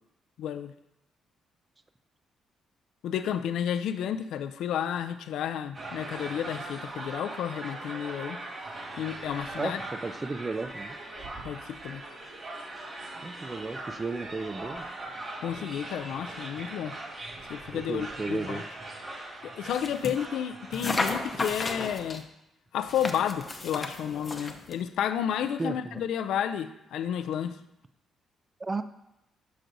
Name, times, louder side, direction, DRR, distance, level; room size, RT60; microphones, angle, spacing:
voice 1, 0.4-0.7 3.0-8.4 9.0-9.8 11.4-12.0 15.4-17.0 17.5-18.6 19.4-22.3 22.7-27.6, left 9 dB, 80° left, 10 dB, 0.3 m, -31 dB
sound 1, 5.7-22.1, right 2 dB, 40° right, 1.8 m, -41 dB
voice 2, 9.6-11.0 13.2-14.8 15.6-15.7 17.7-18.7 25.6-25.8 28.6-28.8, right 3 dB, 25° right, 11 dB, 0.4 m, -34 dB
sound 2, 19.6-20.2 20.7-22.2 22.8-24.8, left 2 dB, 25° left, 0.6 m, -33 dB
6.2 x 5.9 x 2.6 m, 0.84 s
cardioid pair, 90°, 0 cm